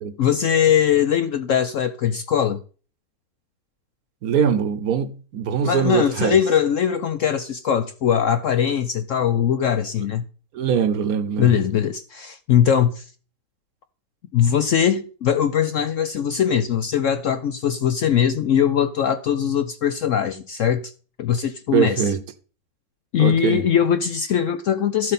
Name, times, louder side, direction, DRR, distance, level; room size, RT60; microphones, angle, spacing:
voice 1, 0.2-2.6 5.6-10.2 11.4-13.1 14.3-20.9 21.2-22.1 23.1-25.1, left 9 dB, 65° left, 0.8 m, -21 dB
voice 2, 4.2-6.4 10.5-11.6 21.7-22.2 23.2-23.6, right 7 dB, 65° right, 1.2 m, -22 dB
13.0 x 7.5 x 4.2 m
omnidirectional pair, 1.8 m